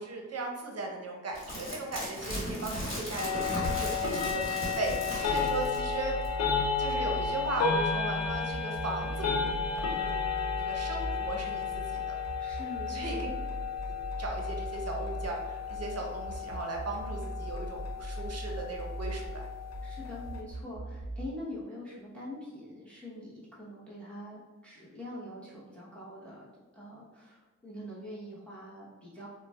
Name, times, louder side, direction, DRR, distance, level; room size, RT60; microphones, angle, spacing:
voice 1, 0.0-4.9 5.2-6.2 6.8-9.3 9.8-12.2 12.9-13.4 14.2-19.4, right 2 dB, 55° right, 1 dB, 0.7 m, -37 dB
sound 1, 1.3-5.9 6.2-6.3, equal, 40° left, 1.3 m, -36 dB
sound 2, 3.2-20.4, left 5 dB, 60° left, 0.5 m, -33 dB
sound 3, 5.3-21.3, right 1 dB, 30° right, 1.2 m, -39 dB
voice 2, 12.4-13.3 19.8-29.3, left 1 dB, 5° left, -8 dB, 0.9 m, -44 dB
3.9 x 2.1 x 2.2 m, 1.3 s
cardioid pair, 60°, 31 cm